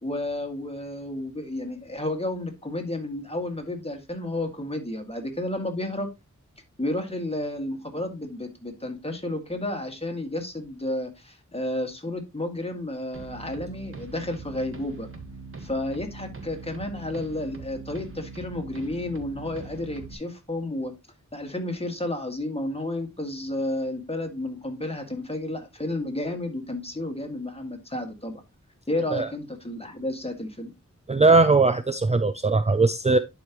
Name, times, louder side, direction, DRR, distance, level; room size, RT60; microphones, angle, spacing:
voice 1, 0.0-6.1 6.8-15.1 15.6-20.9 21.3-28.3 28.9-30.7, left 1 dB, 20° left, 2.0 m, -31 dB
sound 1, 13.1-20.1, right 3 dB, 45° right, 1.5 m, -41 dB
voice 2, 31.1-33.2, right 3 dB, 25° right, 0.4 m, -19 dB
11.0 x 4.9 x 3.0 m
wide cardioid pair, 75°, 30 cm